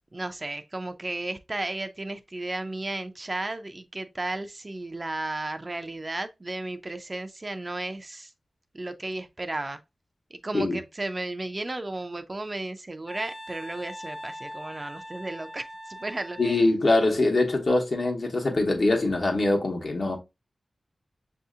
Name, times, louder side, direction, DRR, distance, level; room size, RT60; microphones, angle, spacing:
voice 1, 0.1-8.3 8.7-9.8 10.3-16.4, right 2 dB, 35° right, 0.4 m, -34 dB
Wind instrument woodwind instrument, 13.1-16.7, equal, 15° left, 0.7 m, -41 dB
voice 2, 16.4-20.2, left 2 dB, 60° left, 1.0 m, -23 dB
6.3 x 2.7 x 2.4 m
wide cardioid pair, 90°, 0 cm